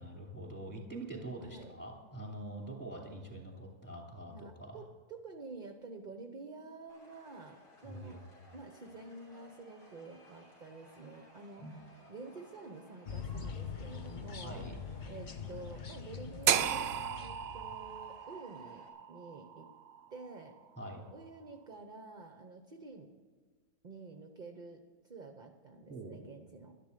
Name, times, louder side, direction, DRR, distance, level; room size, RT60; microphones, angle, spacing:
voice 1, 0.0-4.8 7.8-8.2 11.6-11.8 14.4-14.8 20.8-21.1 25.9-26.2, right 1 dB, 5° left, 0 dB, 2.6 m, -45 dB
voice 2, 1.4-1.7 4.3-8.3 8.5-14.6 15.1-19.7 20.1-20.6 21.1-23.1 23.8-26.8, right 3 dB, 40° right, 6 dB, 0.7 m, -49 dB
sound 1, 6.9-18.9, left 1 dB, 85° left, 3.7 m, -59 dB
sound 2, 13.1-18.1, left 6 dB, 50° left, 0.6 m, -44 dB
sound 3, 16.5-20.6, right 9 dB, 70° right, 0.6 m, -34 dB
12.5 x 10.5 x 6.6 m, 1.5 s
omnidirectional pair, 1.7 m